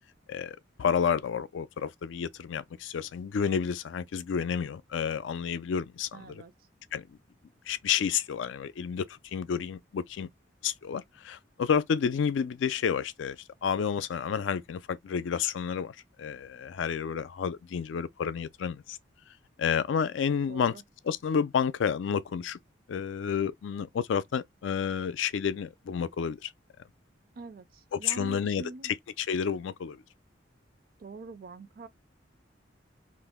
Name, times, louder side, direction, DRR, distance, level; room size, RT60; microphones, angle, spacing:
voice 1, 0.3-6.3 6.9-7.0 7.7-10.3 10.6-13.4 13.6-19.0 19.6-20.7 21.0-22.6 22.9-26.5 27.9-30.0, left 7 dB, 85° left, 0.4 m, -30 dB
voice 2, 6.1-6.5 20.5-20.8 27.4-28.9 31.0-31.9, right 3 dB, 50° right, 0.4 m, -44 dB
2.5 x 2.0 x 3.5 m
head